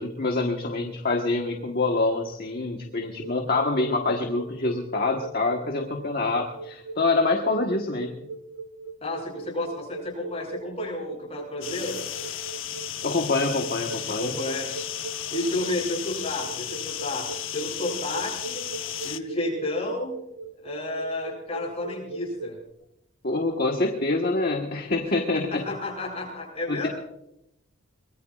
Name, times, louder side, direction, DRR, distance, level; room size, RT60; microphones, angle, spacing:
voice 1, 0.0-8.1 13.0-14.4 23.2-25.6 26.7-26.9, left 3 dB, 45° left, 2 dB, 1.4 m, -26 dB
sound 1, 3.0-22.7, right 4 dB, 60° right, 0.7 m, -39 dB
voice 2, 9.0-12.0 14.2-14.7 15.3-17.3 17.5-18.6 19.0-20.2 20.6-22.5 25.3-26.9, left 2 dB, 30° left, -2 dB, 7.6 m, -31 dB
sound 2, 11.6-19.2, left 11 dB, 70° left, 0.9 m, -34 dB
23.5 x 21.0 x 2.5 m, 0.82 s
head